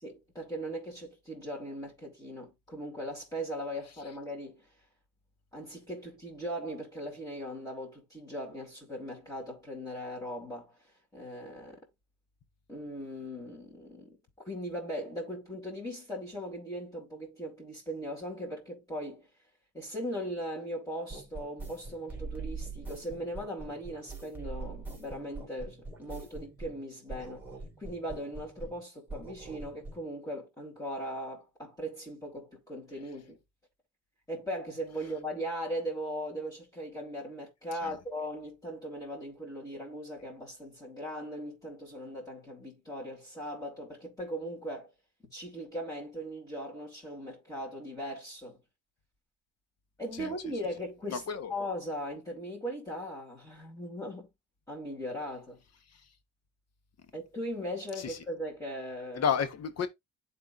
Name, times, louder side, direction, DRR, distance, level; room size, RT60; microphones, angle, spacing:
voice 1, 0.0-4.6 5.5-10.7 11.1-11.8 12.7-19.3 19.7-27.4 27.8-33.4 34.3-44.9 45.3-48.6 50.0-51.2 51.5-54.3 54.7-55.6 57.1-59.3, equal, 10° left, 4.0 m, -39 dB
sound 1, 21.1-26.8 27.1-28.8 29.1-30.0, right 3 dB, 5° right, 3.1 m, -43 dB
voice 2, 51.1-51.5 58.0-58.2 59.1-59.9, left 7 dB, 55° left, 1.3 m, -31 dB
12.0 x 4.2 x 2.6 m
cardioid pair, 90°, 30 cm